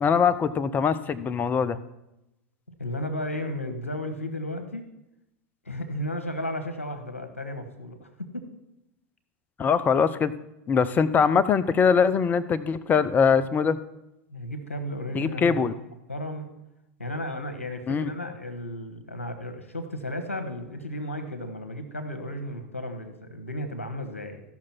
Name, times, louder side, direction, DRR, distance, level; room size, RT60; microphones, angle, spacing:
voice 1, 0.0-1.8 9.6-10.3 10.7-13.8 15.1-15.7 17.9-18.1, left 6 dB, 25° left, 16 dB, 0.6 m, -22 dB
voice 2, 2.8-4.9 5.6-8.5 14.3-15.6 16.1-16.5 17.0-24.4, left 1 dB, 85° left, 7 dB, 1.3 m, -34 dB
15.0 x 6.1 x 4.5 m, 0.90 s
figure-of-eight pair, 85°, 7 cm